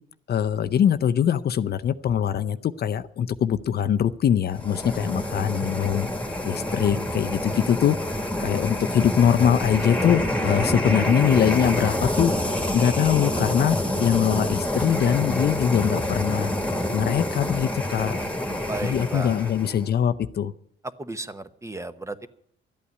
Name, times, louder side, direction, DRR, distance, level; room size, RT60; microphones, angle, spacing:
voice 1, 0.3-6.1 6.4-8.0 8.4-12.3 12.7-16.5 16.9-18.2 18.8-20.5, left 9 dB, 55° left, 11 dB, 0.6 m, -22 dB
sound 1, 4.5-19.9, left 1 dB, 5° left, 1.7 m, -27 dB
voice 2, 18.7-19.5 21.0-22.3, right 2 dB, 15° right, 11 dB, 0.9 m, -34 dB
12.5 x 8.6 x 9.5 m, 0.69 s
cardioid pair, 90°, 20 cm